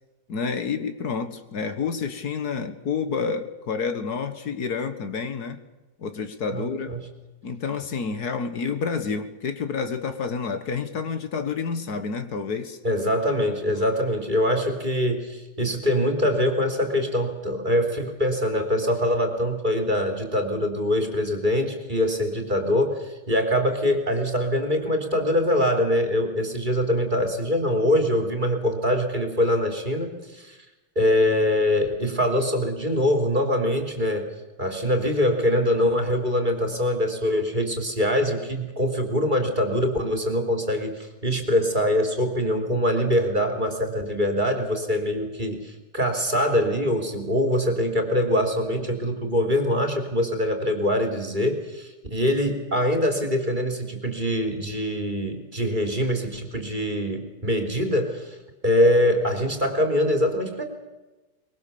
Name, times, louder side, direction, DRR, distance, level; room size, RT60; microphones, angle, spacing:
voice 1, 0.3-5.6 6.0-6.9 7.4-12.8, left 5 dB, 70° left, 10 dB, 1.9 m, -29 dB
voice 2, 6.5-7.0 12.8-30.6 30.9-34.3 34.6-58.4 58.6-60.6, left 1 dB, 30° right, 5 dB, 3.4 m, -23 dB
24.0 x 22.5 x 7.0 m, 1.1 s
omnidirectional pair, 1.8 m